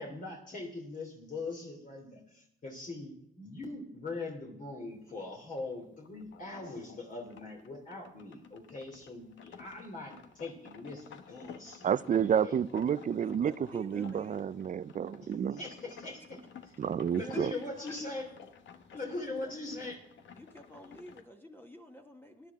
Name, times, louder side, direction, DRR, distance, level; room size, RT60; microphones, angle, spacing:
voice 1, 0.0-12.6 15.5-16.4 17.2-18.2 18.9-20.0, left 3 dB, 40° left, 3.0 m, -41 dB
sound 1, 4.9-21.2, left 7 dB, 70° left, 1.2 m, -54 dB
voice 2, 11.8-15.6 16.8-17.5, right 8 dB, 40° right, 0.5 m, -30 dB
voice 3, 13.1-14.6 16.2-16.3 17.1-18.1 18.9-19.5 20.3-22.5, equal, 10° left, 1.4 m, -49 dB
18.0 x 11.0 x 3.6 m
cardioid pair, 90°, 20 cm